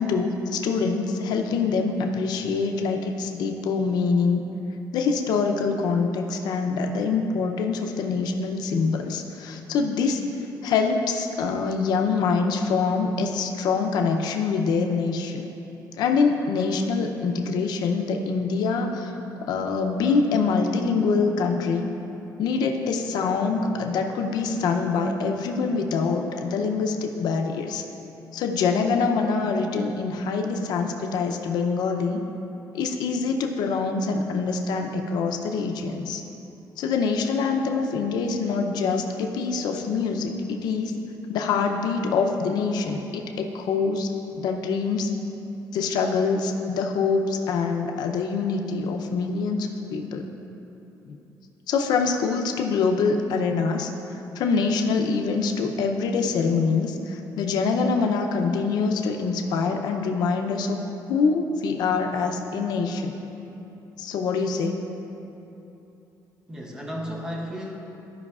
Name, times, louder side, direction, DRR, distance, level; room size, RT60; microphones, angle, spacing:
voice 1, 0.0-4.4 4.9-10.2 10.6-15.4 16.0-19.1 19.5-21.9 22.4-27.8 28.3-32.2 32.7-36.2 36.8-40.9 41.3-45.1 45.7-50.3 51.1-51.2 51.7-53.9 54.3-60.8 61.1-63.2 64.0-64.8, left 4 dB, 75° left, 3 dB, 0.6 m, -25 dB
voice 2, 2.0-2.4 66.5-67.8, equal, 10° right, -1 dB, 0.7 m, -34 dB
14.0 x 5.5 x 2.4 m, 3.0 s
cardioid pair, 170°, 7 cm